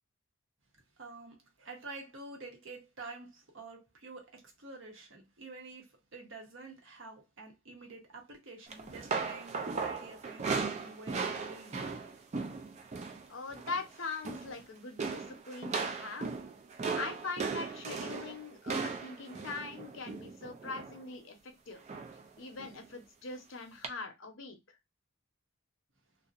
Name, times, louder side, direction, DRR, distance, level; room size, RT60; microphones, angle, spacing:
voice 1, 1.0-11.8, right 3 dB, 70° right, 0.8 m, -48 dB
sound 1, 8.7-13.2 13.5-13.8 14.1-14.6 15.0-21.0 21.9-22.2 22.6-22.8 23.8-23.9, right 4 dB, 35° right, 0.3 m, -37 dB
voice 2, 13.3-16.3 17.0-21.8 22.4-24.6, left 4 dB, 75° left, 0.7 m, -42 dB
2.6 x 2.0 x 2.4 m
head